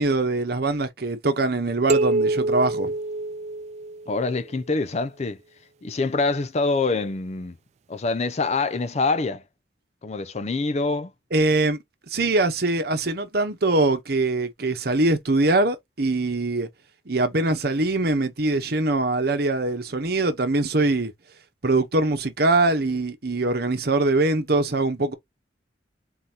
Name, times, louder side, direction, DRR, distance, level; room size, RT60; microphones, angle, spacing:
voice 1, 0.0-2.9 11.3-11.8 12.1-16.7 17.1-21.1 21.6-25.1, right 2 dB, 60° right, 1.0 m, -22 dB
sound 1, 1.9-4.3, right 2 dB, 40° right, 0.3 m, -25 dB
voice 2, 4.1-5.4 5.8-7.6 7.9-9.4 10.0-11.1, left 3 dB, 40° left, 0.5 m, -25 dB
4.0 x 3.8 x 2.8 m
head